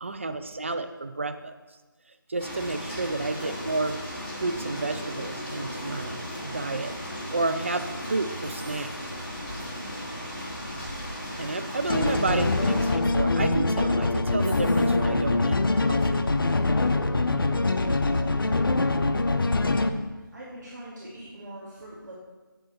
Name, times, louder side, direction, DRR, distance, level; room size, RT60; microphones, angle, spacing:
voice 1, 0.0-1.5 2.3-4.0 4.4-6.9 7.3-8.9 9.8-10.0 11.4-16.2, right 3 dB, 35° right, 9 dB, 0.5 m, -31 dB
sound 1, 2.4-12.9, equal, 35° left, 3.0 m, -36 dB
sound 2, 8.4-9.1 13.0-13.1 13.4-13.7 14.4-15.0, right 1 dB, 15° right, 3.1 m, -49 dB
sound 3, 11.9-19.9, left 2 dB, 70° left, 0.7 m, -24 dB
voice 2, 20.3-22.1, right 1 dB, 55° right, -7 dB, 2.4 m, -44 dB
7.9 x 7.6 x 4.3 m, 1.2 s
figure-of-eight pair, 170°, 12 cm